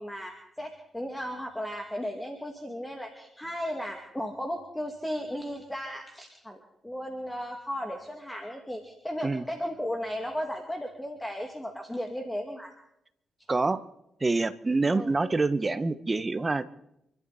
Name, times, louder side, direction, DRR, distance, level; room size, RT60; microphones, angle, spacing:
voice 1, 0.0-12.7 14.9-15.1, equal, 10° left, 3 dB, 2.5 m, -35 dB
voice 2, 13.5-13.8 14.2-16.6, right 3 dB, 30° right, 14 dB, 1.1 m, -26 dB
28.0 x 12.0 x 4.2 m, 0.81 s
supercardioid pair, 50°, 0 cm